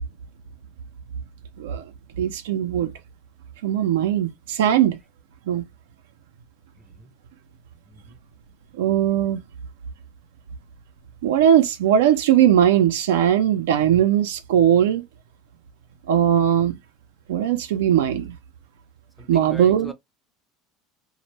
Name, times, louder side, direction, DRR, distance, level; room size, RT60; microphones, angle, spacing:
voice 1, 2.2-2.9 3.6-5.0 5.5-5.6 8.8-9.4 11.2-15.0 16.1-16.8 17.3-18.3 19.3-19.9, right 10 dB, 85° right, 0.4 m, -19 dB
voice 2, 7.9-8.2 19.2-19.9, left 1 dB, ahead, 0.5 m, -41 dB
2.1 x 2.1 x 3.1 m
supercardioid pair, 100°, 0 cm